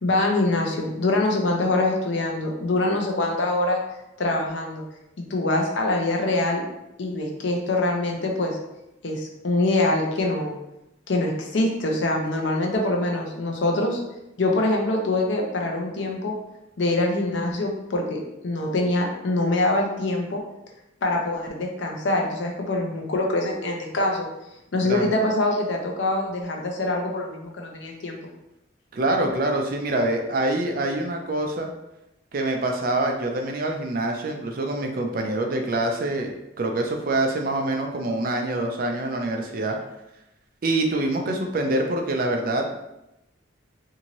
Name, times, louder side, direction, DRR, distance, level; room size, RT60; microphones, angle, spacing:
voice 1, 0.0-3.8 4.2-4.8 5.2-6.6 7.0-8.6 9.0-10.6 11.1-14.0 14.4-16.3 16.8-20.4 21.0-24.3 24.7-28.3, left 2 dB, 70° left, 1 dB, 0.6 m, -24 dB
voice 2, 28.9-31.7 32.3-39.8 40.6-42.7, right 2 dB, 50° right, 3 dB, 0.4 m, -25 dB
2.7 x 2.6 x 2.9 m, 0.89 s
head